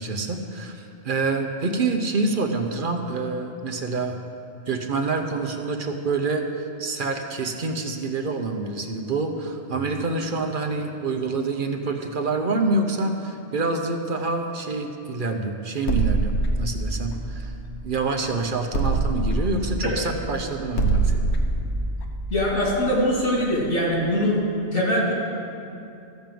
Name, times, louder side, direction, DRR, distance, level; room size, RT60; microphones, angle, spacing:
voice 1, 0.0-4.2 4.7-17.5 17.8-21.2, right 3 dB, 50° right, 4 dB, 0.8 m, -27 dB
sound 1, 15.9-18.2 18.7-23.4, right 2 dB, 70° left, 1.2 m, -25 dB
voice 2, 22.3-24.4 24.7-25.1, left 1 dB, 85° left, -4 dB, 2.8 m, -22 dB
14.0 x 5.3 x 7.6 m, 2.6 s
omnidirectional pair, 1.2 m